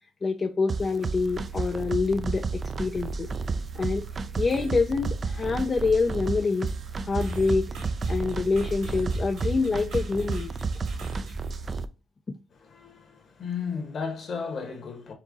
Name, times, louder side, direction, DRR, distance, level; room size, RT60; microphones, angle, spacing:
voice 1, 0.2-3.3 3.7-4.0 4.4-6.7 7.0-7.7 8.1-10.5, left 4 dB, 35° left, 0.5 m, -26 dB
sound 1, 0.7-11.9, right 4 dB, 40° right, 0.4 m, -32 dB
sound 2, 3.2-3.9 4.4-5.2 5.4-11.6, right 1 dB, 85° right, 1.9 m, -41 dB
voice 2, 12.5-15.1, left 5 dB, 55° left, 1.5 m, -34 dB
4.6 x 2.9 x 3.9 m
cardioid pair, 90°, 0 cm